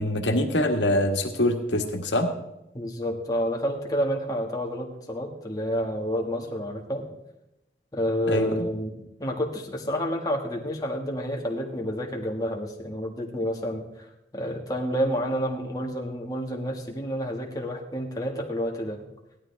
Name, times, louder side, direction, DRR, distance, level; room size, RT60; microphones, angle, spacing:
voice 1, 0.0-2.3 8.3-8.7, left 1 dB, 80° left, 3 dB, 1.6 m, -24 dB
voice 2, 2.7-7.1 7.9-13.8 14.3-19.0, equal, 20° left, 0 dB, 1.7 m, -29 dB
16.5 x 12.5 x 3.5 m, 0.87 s
head